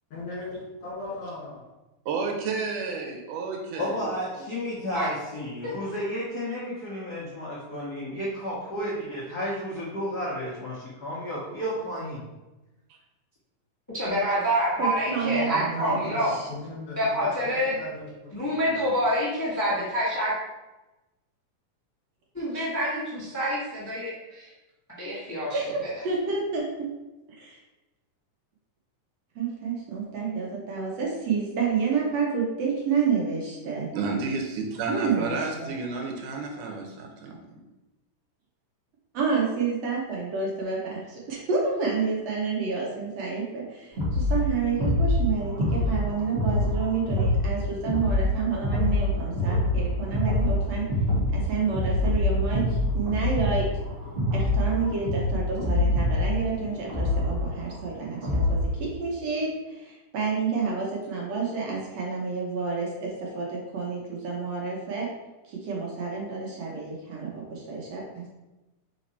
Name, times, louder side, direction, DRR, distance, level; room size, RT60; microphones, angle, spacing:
voice 1, 0.1-1.6 15.3-18.9, left 2 dB, 50° left, -6 dB, 2.7 m, -38 dB
voice 2, 2.1-4.5 33.9-37.4, right 4 dB, 80° right, 1 dB, 2.4 m, -31 dB
voice 3, 3.8-12.3, equal, 75° left, -6 dB, 0.9 m, -32 dB
voice 4, 13.9-16.3 17.0-17.7 18.3-20.3 22.3-24.5 25.0-25.6, equal, 25° left, -8 dB, 0.4 m, -27 dB
voice 5, 14.8-16.5 25.5-26.9 27.4-27.6 29.4-33.9 34.9-35.7 39.1-50.9 51.3-53.7 54.3-65.1 65.4-68.3, right 5 dB, 60° right, -3 dB, 2.0 m, -29 dB
sound 1, 44.0-58.7, left 1 dB, 30° right, 1.6 m, -25 dB
5.2 x 4.8 x 4.2 m, 1.0 s
omnidirectional pair, 3.7 m